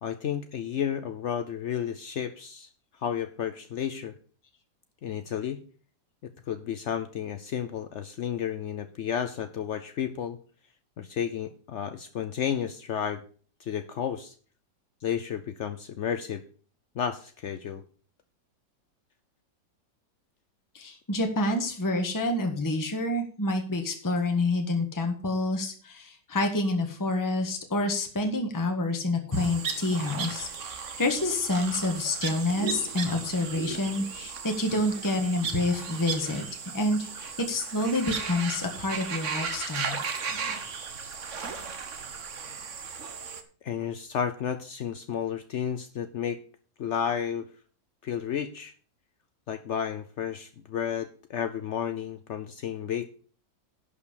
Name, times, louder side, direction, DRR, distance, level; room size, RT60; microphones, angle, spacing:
voice 1, 0.0-2.7 3.0-4.1 5.0-5.6 6.5-10.4 11.0-13.2 13.6-14.3 15.0-16.4 16.9-17.8 43.6-46.4 46.8-47.5 48.0-48.7 49.5-53.1, left 8 dB, 80° left, 10 dB, 0.6 m, -32 dB
voice 2, 20.7-36.4 36.7-40.0, left 2 dB, 10° left, 3 dB, 1.3 m, -28 dB
sound 1, 29.3-43.4, right 5 dB, 45° right, 1.2 m, -36 dB
11.0 x 5.4 x 6.9 m, 0.42 s
omnidirectional pair, 2.0 m